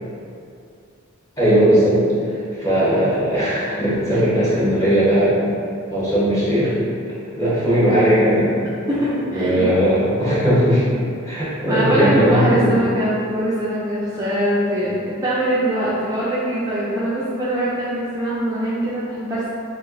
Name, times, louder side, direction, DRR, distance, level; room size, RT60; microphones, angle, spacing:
voice 1, 1.4-2.0 2.6-5.4 5.9-6.7 7.4-8.5 9.3-10.8 11.3-12.8, equal, 15° left, -11 dB, 1.0 m, -18 dB
voice 2, 8.9-9.6 11.7-19.5, right 1 dB, 15° right, -10 dB, 0.4 m, -22 dB
2.8 x 2.0 x 3.8 m, 2.5 s
head